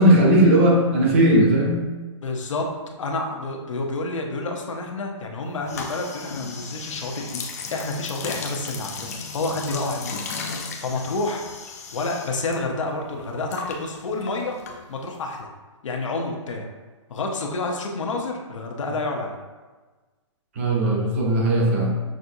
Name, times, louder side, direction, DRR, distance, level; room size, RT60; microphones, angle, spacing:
voice 1, 0.0-1.9 20.6-21.9, right 1 dB, 25° right, -2 dB, 0.6 m, -17 dB
voice 2, 2.2-2.7 3.0-7.4 7.7-10.2 10.8-11.4 11.9-14.6 14.9-15.5 15.8-16.7 17.1-19.4, left 3 dB, 80° left, 1 dB, 0.7 m, -29 dB
sound 1, 5.7-12.6 12.8-15.2, left 5 dB, 30° left, 0.4 m, -35 dB
6.1 x 2.6 x 2.7 m, 1.3 s
hypercardioid pair, 175°, 16 cm